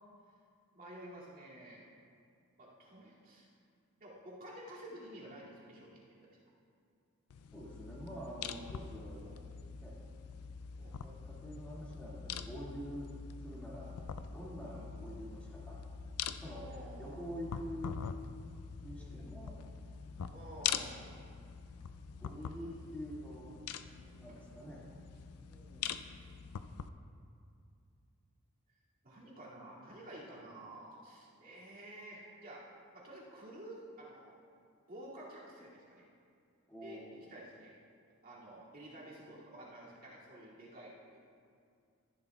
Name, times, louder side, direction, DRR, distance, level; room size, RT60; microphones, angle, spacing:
voice 1, 0.7-1.9 2.6-3.5 4.0-6.4 9.2-9.4 10.8-11.0 14.7-14.9 16.6-17.1 19.0-19.3 20.3-21.1 22.3-22.9 25.4-26.1 29.0-32.6 32.9-34.4 34.9-36.1 36.8-37.0 37.3-37.8 38.2-41.2, right 1 dB, 40° right, -6 dB, 2.5 m, -51 dB
sound 1, 7.3-26.9, left 7 dB, 80° left, 0.4 m, -44 dB
voice 2, 7.5-9.2 9.8-10.0 10.5-10.6 11.0-13.1 13.4-14.0 14.3-15.8 16.4-18.1 18.8-19.6 22.2-23.6 23.9-25.0 36.7-37.2, equal, 5° left, -7 dB, 2.2 m, -46 dB
14.0 x 11.0 x 2.3 m, 2.3 s
head